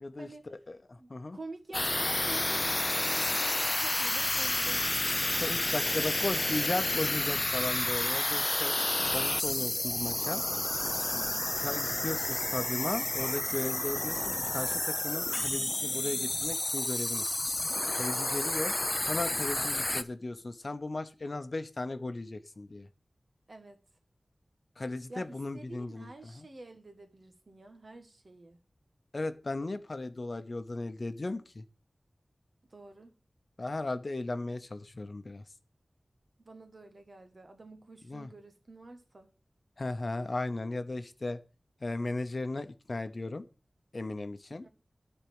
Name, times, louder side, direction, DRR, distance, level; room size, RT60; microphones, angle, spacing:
voice 1, 0.0-1.4 5.4-8.7 9.1-10.4 11.6-17.3 18.0-18.7 19.1-22.9 24.8-26.5 29.1-31.6 33.6-35.4 38.1-38.3 39.8-41.4 41.8-43.4 43.9-44.6, left 2 dB, 50° left, 0.9 m, -36 dB
voice 2, 1.0-5.3 11.1-11.5 19.5-19.8 23.5-23.8 25.1-28.6 32.7-33.1 36.4-39.3, right 2 dB, 55° right, 1.6 m, -48 dB
sound 1, 1.7-20.0, left 2 dB, 30° left, 0.6 m, -30 dB
10.5 x 4.4 x 7.8 m
wide cardioid pair, 80°, 0 cm